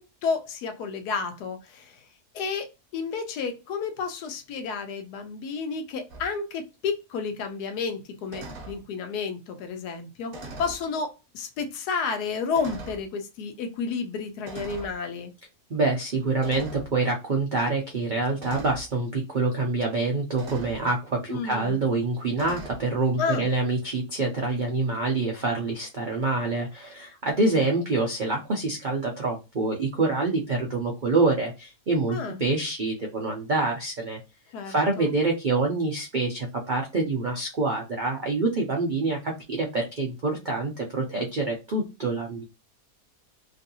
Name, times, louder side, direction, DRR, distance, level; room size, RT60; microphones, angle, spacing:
voice 1, 0.0-2.0 2.3-15.3 21.3-21.8 23.2-23.5 32.1-32.4 34.5-35.1, left 5 dB, 85° left, 1.2 m, -31 dB
sound 1, 6.1-6.3 8.3-8.8 10.3-10.8 11.7-11.8 12.5-13.1 14.5-15.0 16.4-16.9 18.4-18.9 20.4-20.8 22.3-22.8, right 2 dB, 50° right, 0.7 m, -40 dB
voice 2, 15.7-34.2 34.7-42.4, right 3 dB, 80° right, 0.4 m, -26 dB
3.1 x 2.6 x 2.6 m
omnidirectional pair, 1.7 m